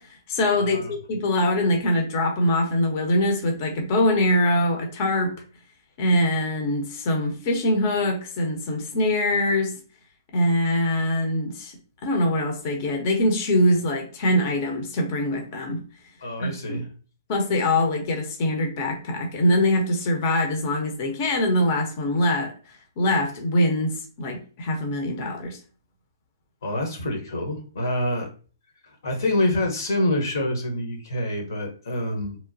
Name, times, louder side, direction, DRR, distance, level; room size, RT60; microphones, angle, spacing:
voice 1, 0.0-5.3 6.0-9.7 10.3-11.7 12.0-15.8 16.4-16.8 17.3-22.5 23.0-25.6, left 1 dB, 40° left, 3 dB, 0.7 m, -23 dB
voice 2, 0.6-0.9 16.2-16.9 26.6-28.3 29.0-32.4, left 1 dB, 65° left, 2 dB, 1.0 m, -26 dB
2.9 x 2.0 x 2.6 m, 0.39 s
hypercardioid pair, 130°, 2 cm